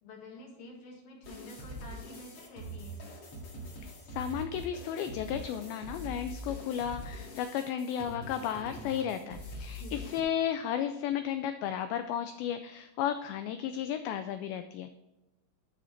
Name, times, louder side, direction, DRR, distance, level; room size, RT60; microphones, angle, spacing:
voice 1, 0.0-3.0 9.8-10.1, left 2 dB, 65° left, -1 dB, 3.3 m, -49 dB
sound 1, 1.2-10.2, equal, 45° left, 2.3 m, -43 dB
voice 2, 3.8-14.9, left 9 dB, 85° left, 9 dB, 2.1 m, -34 dB
11.5 x 4.2 x 4.4 m, 1.0 s
omnidirectional pair, 4.6 m